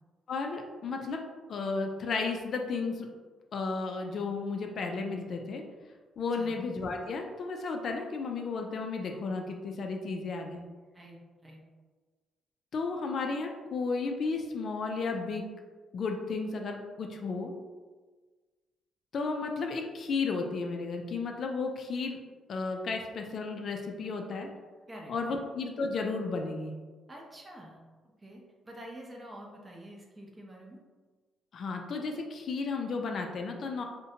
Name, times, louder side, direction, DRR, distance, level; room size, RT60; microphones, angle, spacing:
voice 1, 0.3-1.2 1.5-3.1 3.5-5.6 6.2-10.6 12.7-15.5 15.9-17.5 19.1-22.2 22.5-24.5 25.1-26.7 31.5-33.8, left 4 dB, 55° left, 3 dB, 0.3 m, -33 dB
voice 2, 10.9-11.6 24.9-25.4 27.1-27.8 28.2-30.8, right 1 dB, 20° right, -1 dB, 0.6 m, -47 dB
2.6 x 2.1 x 2.7 m, 1.4 s
cardioid pair, 90°, 0 cm